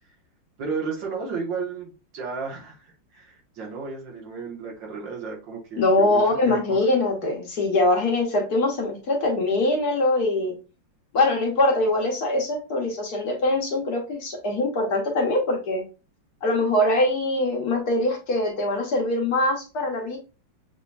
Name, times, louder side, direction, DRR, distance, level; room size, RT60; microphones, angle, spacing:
voice 1, 0.6-6.8, right 5 dB, 75° right, -1 dB, 2.0 m, -33 dB
voice 2, 5.8-10.5 11.1-15.8 16.4-20.2, left 2 dB, 60° left, 1 dB, 1.4 m, -23 dB
6.9 x 2.8 x 2.3 m, 0.31 s
omnidirectional pair, 2.0 m